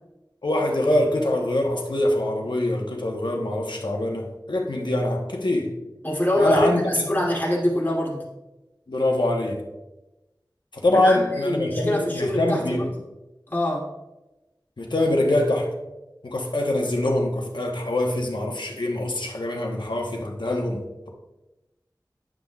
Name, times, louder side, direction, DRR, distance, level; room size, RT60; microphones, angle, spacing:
voice 1, 0.4-5.7 6.4-7.1 8.9-9.6 10.7-12.9 14.8-15.7 16.2-21.1, left 1 dB, 75° left, 1 dB, 1.0 m, -24 dB
voice 2, 6.0-8.3 11.0-12.9 13.5-13.9, equal, 25° left, -5 dB, 2.6 m, -24 dB
10.5 x 6.0 x 2.3 m, 1.0 s
wide cardioid pair, 50°, 8 cm